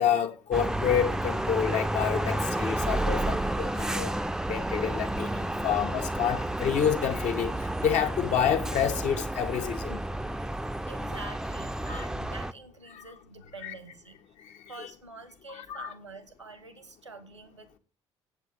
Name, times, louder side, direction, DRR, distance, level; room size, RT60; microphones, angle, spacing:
voice 1, 0.0-4.1 4.5-7.5 7.8-10.0 11.9-12.0 12.9-13.0 13.6-13.7 14.8-14.9 15.7-15.9, left 8 dB, 55° left, 1.3 m, -28 dB
sound 1, 0.5-12.5, right 1 dB, 5° right, 0.6 m, -31 dB
voice 2, 10.9-14.2 14.7-17.8, right 3 dB, 85° right, 1.2 m, -46 dB
8.2 x 7.8 x 8.9 m
figure-of-eight pair, 50°, 15 cm